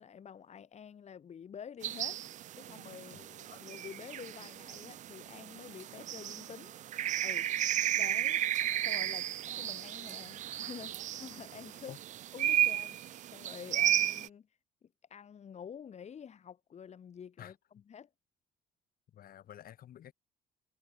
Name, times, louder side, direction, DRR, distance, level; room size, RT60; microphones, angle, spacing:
voice 1, 0.0-2.2 2.5-3.2 3.5-6.7 7.2-7.5 8.0-8.4 8.8-11.9 12.3-17.5 17.9-18.1, left 8 dB, 40° left, 2.4 m, -49 dB
sound 1, 1.8-14.3, right 12 dB, 45° right, 0.4 m, -34 dB
voice 2, 3.0-3.5 11.9-12.0 17.4-17.6 19.1-20.1, left 11 dB, 60° left, 5.5 m, -51 dB
cardioid pair, 110°, 17 cm